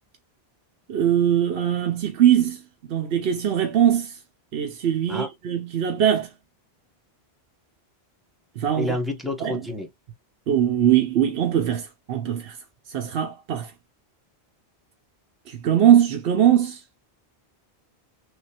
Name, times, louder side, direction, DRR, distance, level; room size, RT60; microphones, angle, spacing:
voice 1, 0.9-2.6 2.9-4.1 4.5-6.3 8.6-9.0 9.4-9.6 10.5-12.6 12.9-13.7 15.5-16.8, right 10 dB, 75° right, 1.0 m, -21 dB
voice 2, 8.7-9.9, left 1 dB, ahead, 0.9 m, -29 dB
3.5 x 3.1 x 2.8 m
omnidirectional pair, 1.1 m